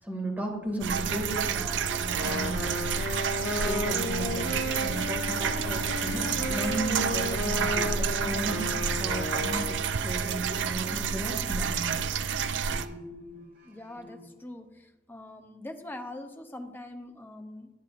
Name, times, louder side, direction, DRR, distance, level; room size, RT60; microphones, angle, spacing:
voice 1, 0.0-2.8 3.5-8.0 8.2-9.6 10.0-12.0, right 1 dB, 10° right, -1 dB, 2.2 m, -35 dB
sound 1, 0.8-12.9, right 6 dB, 85° right, 0.4 m, -29 dB
sound 2, 1.0-12.1 12.7-14.2, equal, 70° right, 2.6 m, -47 dB
Wind instrument woodwind instrument, 2.0-10.0, left 3 dB, 85° left, 0.6 m, -34 dB
voice 2, 13.6-17.7, left 1 dB, 10° left, 5 dB, 0.7 m, -43 dB
11.0 x 8.2 x 2.5 m, 1.0 s
head